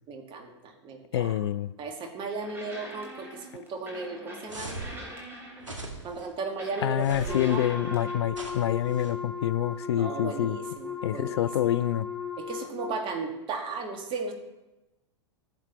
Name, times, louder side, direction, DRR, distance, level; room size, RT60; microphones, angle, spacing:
voice 1, 0.1-1.3 1.8-5.0 6.0-7.7 9.9-11.7 12.4-14.3, right 4 dB, 30° right, 3 dB, 1.9 m, -36 dB
voice 2, 1.1-1.7 6.8-10.6 11.0-12.1, left 12 dB, 60° left, 18 dB, 0.4 m, -27 dB
sound 1, 2.4-5.9 6.6-8.1, right 1 dB, 15° right, 3.1 m, -43 dB
sound 2, 4.5-5.0 5.6-6.3 7.0-7.6 8.3-9.1, right 3 dB, 80° right, 1.8 m, -40 dB
Wind instrument woodwind instrument, 7.2-13.0, left 6 dB, 5° left, 2.4 m, -36 dB
16.5 x 7.3 x 3.0 m, 0.98 s
figure-of-eight pair, 95°, 16 cm